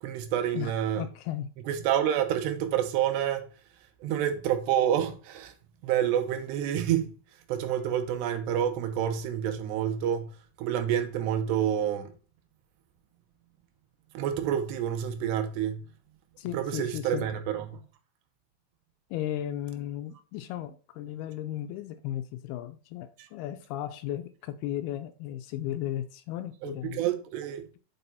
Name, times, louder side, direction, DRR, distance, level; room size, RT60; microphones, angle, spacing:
voice 1, 0.0-1.1 1.7-3.5 4.0-5.5 5.8-7.2 7.5-12.1 14.1-15.8 16.5-17.8 23.2-23.3 26.6-27.7, right 10 dB, 85° right, 3.0 m, -28 dB
voice 2, 0.5-1.5 16.4-17.3 19.1-27.0, left 12 dB, 80° left, 2.4 m, -35 dB
6.9 x 5.6 x 4.0 m
omnidirectional pair, 4.8 m